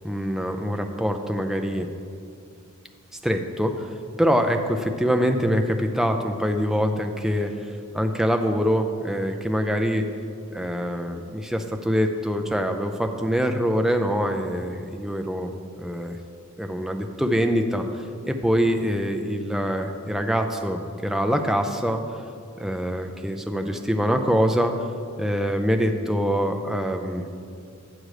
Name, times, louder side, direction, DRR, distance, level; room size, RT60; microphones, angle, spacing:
voice 1, 0.0-1.9 3.2-10.0 10.5-15.5 15.8-16.2 16.6-22.0 22.6-24.8 25.2-27.2, equal, ahead, 4 dB, 0.4 m, -24 dB
8.8 x 6.4 x 4.8 m, 2.3 s
head